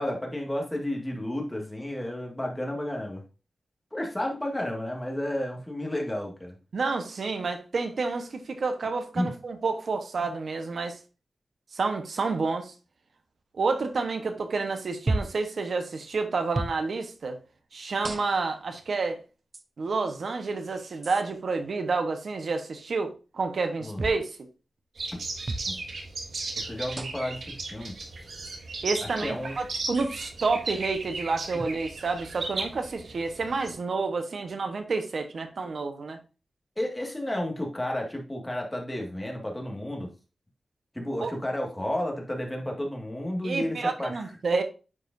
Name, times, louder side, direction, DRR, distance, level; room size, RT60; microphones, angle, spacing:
voice 1, 0.0-3.2 3.9-6.5 9.2-9.3 23.8-24.0 25.7-25.8 26.7-27.4 27.7-28.3 29.2-29.5 31.5-31.6 36.8-40.1 40.9-44.3, left 1 dB, 15° left, 1.8 m, -32 dB
voice 2, 6.7-11.0 11.7-12.7 13.5-17.4 17.7-19.2 19.8-24.4 28.8-36.2 41.2-41.3 43.4-44.6, right 4 dB, 70° right, 1.0 m, -29 dB
sound 1, 15.1-15.4 16.5-16.8 18.0-18.5 19.5-19.6 21.0-21.2 24.0-24.2 25.5-25.7 26.9-27.3 28.5-28.6 29.9-30.1, right 2 dB, 30° right, 0.6 m, -32 dB
sound 2, 25.0-33.7, right 3 dB, 85° right, 1.6 m, -36 dB
9.8 x 4.9 x 2.6 m
wide cardioid pair, 105°, 0 cm